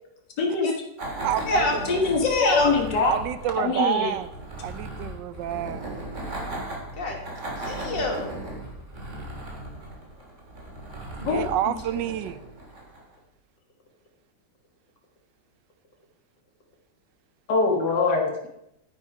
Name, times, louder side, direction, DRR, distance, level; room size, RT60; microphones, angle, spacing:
voice 1, 0.4-0.7 1.9-3.1 3.6-4.1 11.2-11.7 17.5-18.3, left 4 dB, 70° left, 1 dB, 2.3 m, -23 dB
sound 1, 1.0-13.2, right 1 dB, 40° right, 2.8 m, -37 dB
voice 2, 1.2-2.0 3.0-4.3 4.6-5.8 11.2-12.4, right 11 dB, 90° right, 14 dB, 1.3 m, -28 dB
voice 3, 2.2-2.7 7.0-7.2 7.6-8.3, left 2 dB, 85° left, 1 dB, 2.9 m, -25 dB
10.0 x 9.5 x 4.8 m, 0.82 s
omnidirectional pair, 1.9 m